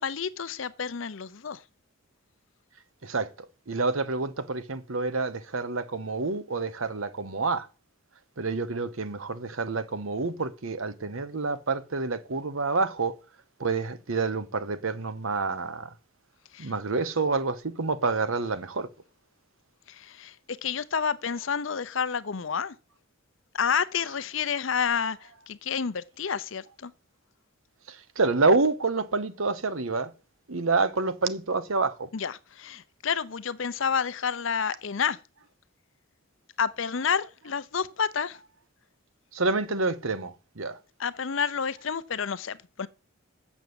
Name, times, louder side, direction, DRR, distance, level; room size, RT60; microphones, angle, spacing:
voice 1, 0.0-1.6 16.5-16.7 19.9-22.7 23.5-26.9 32.1-35.2 36.6-38.4 41.0-42.9, left 6 dB, 65° left, 0.6 m, -29 dB
voice 2, 3.7-7.7 8.4-13.1 13.6-15.9 16.6-18.9 27.9-30.1 30.5-32.1 39.3-40.8, right 3 dB, 75° right, 1.0 m, -28 dB
7.2 x 7.0 x 8.0 m
head